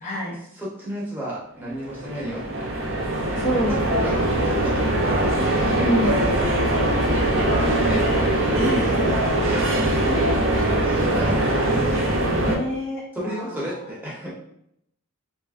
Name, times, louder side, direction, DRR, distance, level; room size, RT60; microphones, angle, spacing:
voice 1, 0.0-0.4 3.4-3.9 5.7-6.2 8.6-8.9 12.3-13.6, equal, 35° left, -2 dB, 0.3 m, -26 dB
voice 2, 0.5-2.7 3.7-9.1 9.4-10.3 10.6-12.1 13.1-14.3, equal, 10° right, -6 dB, 0.7 m, -33 dB
sound 1, 1.7-12.5, right 1 dB, 55° right, 0.5 m, -22 dB
3.2 x 2.4 x 2.3 m, 0.74 s
head